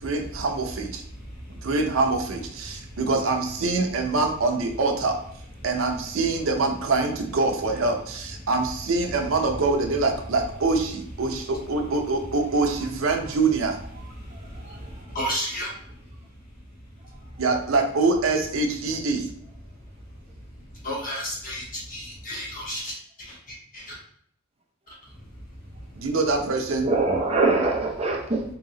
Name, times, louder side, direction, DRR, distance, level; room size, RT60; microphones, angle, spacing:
voice 1, 0.0-1.0 1.6-5.2 5.6-13.8 17.4-19.3 26.0-26.9, right 3 dB, 90° right, 4 dB, 0.6 m, -24 dB
voice 2, 1.1-1.7 2.7-3.0 8.4-8.5 11.2-11.5 14.0-16.0 17.0-17.4 20.5-24.0 24.9-26.1, equal, 45° left, -4 dB, 1.2 m, -35 dB
voice 3, 14.3-15.1 26.8-28.4, right 3 dB, 30° right, 0 dB, 0.6 m, -24 dB
2.9 x 2.8 x 3.7 m, 0.65 s
head